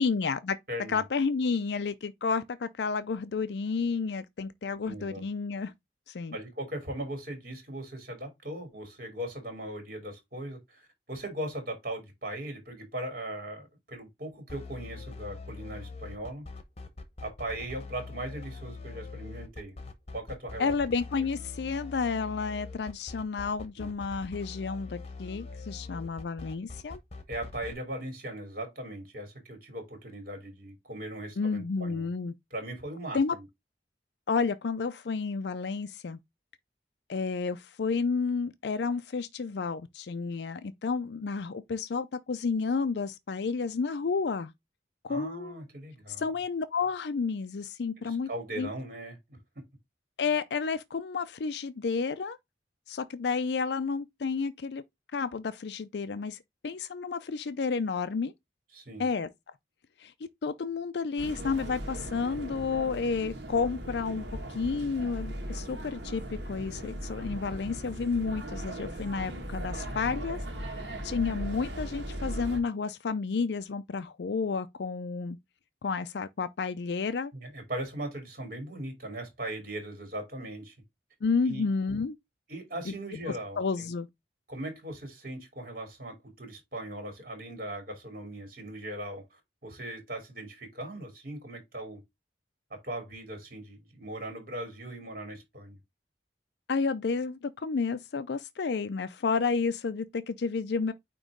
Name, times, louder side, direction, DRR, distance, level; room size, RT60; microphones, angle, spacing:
voice 1, 0.0-0.6 0.9-5.7 6.1-6.4 20.6-27.0 31.4-32.3 33.1-33.3 34.3-36.2 37.1-44.5 45.0-45.6 46.2-48.3 48.6-48.7 50.2-52.4 52.9-54.8 55.1-58.3 59.0-59.3 60.0-60.1 60.4-70.4 70.7-75.4 75.8-77.3 81.2-82.2 82.9-83.0 83.6-84.1 96.7-100.9, left 4 dB, 70° left, 0.5 m, -31 dB
voice 2, 0.7-1.0 4.8-5.2 6.3-16.4 17.2-19.8 20.1-20.7 21.2-21.3 23.8-23.9 27.3-32.1 32.5-33.4 45.1-46.3 48.0-49.4 58.7-59.1 77.3-80.7 81.4-81.6 82.5-83.9 84.5-92.0 92.7-95.8, right 1 dB, 50° right, 3.0 m, -39 dB
sound 1, 14.5-27.7, left 3 dB, 35° left, 1.0 m, -43 dB
sound 2, 61.2-72.6, right 1 dB, 75° right, 1.8 m, -38 dB
9.0 x 3.0 x 3.6 m
head